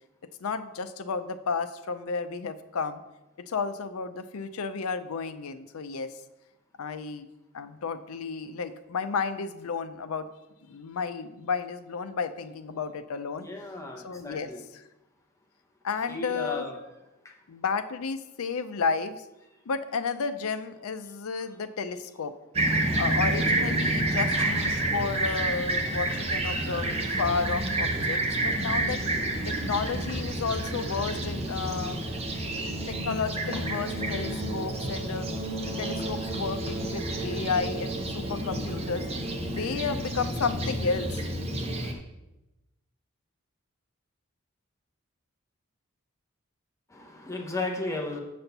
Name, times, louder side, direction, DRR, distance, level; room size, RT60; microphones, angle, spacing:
voice 1, 0.4-3.0 3.4-6.1 6.8-7.3 7.5-10.3 10.6-13.5 14.0-14.8 15.8-16.7 17.5-19.2 19.7-22.3 23.0-29.0 29.5-32.0 32.6-35.3 35.6-39.1 39.5-41.2 41.6-42.0, left 5 dB, 85° left, 10 dB, 0.5 m, -32 dB
voice 2, 13.4-14.6 16.1-16.7 46.9-48.2, left 2 dB, 15° left, 1 dB, 0.9 m, -34 dB
Fixed-wing aircraft airplane, 22.5-41.9, right 1 dB, 30° right, 0.8 m, -29 dB
6.9 x 4.3 x 6.7 m, 0.97 s
head